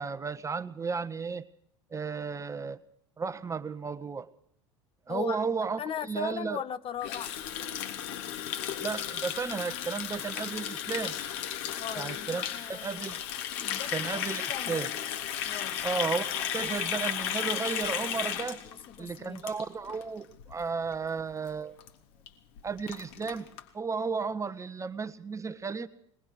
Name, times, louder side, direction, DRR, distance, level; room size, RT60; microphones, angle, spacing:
voice 1, 0.0-1.4 1.9-2.8 3.2-4.3 5.1-6.6 8.8-11.1 12.0-12.4 12.7-13.2 13.9-14.9 15.8-18.6 19.0-21.8 22.6-23.5 23.7-25.9, right 5 dB, 20° right, 1.4 m, -33 dB
voice 2, 5.1-5.4 5.8-7.3 11.8-13.0 13.6-14.2 14.5-14.8 15.4-15.8 18.6-19.4, left 10 dB, 35° left, 1.2 m, -38 dB
Water tap faucet, 7.0-20.0 20.3-20.5 20.9-21.2 21.5-21.6 21.8-21.9 22.3-22.4 22.6-23.6, left 10 dB, 60° left, 3.3 m, -34 dB
22.5 x 20.5 x 6.4 m
hypercardioid pair, 75°, 15 cm